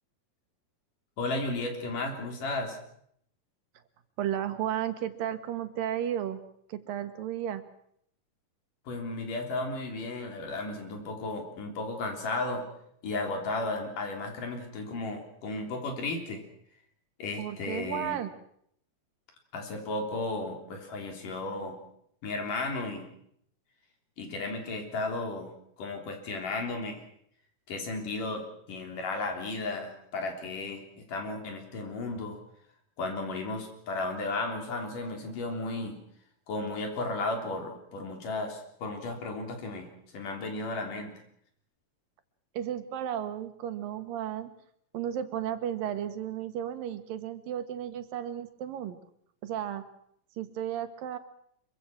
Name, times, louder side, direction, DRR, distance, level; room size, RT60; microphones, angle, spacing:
voice 1, 1.2-2.8 8.9-12.6 13.0-16.4 17.2-18.2 19.5-21.8 22.2-23.1 24.2-27.0 27.7-28.4 28.7-32.4 33.0-36.0 36.5-41.1, left 2 dB, 65° left, 3 dB, 5.1 m, -34 dB
voice 2, 4.2-6.4 6.7-7.6 17.4-18.3 42.5-44.5 44.9-49.0 49.4-49.8 50.4-51.2, right 10 dB, 80° right, 9 dB, 3.2 m, -33 dB
25.5 x 23.5 x 6.1 m, 0.69 s
omnidirectional pair, 4.0 m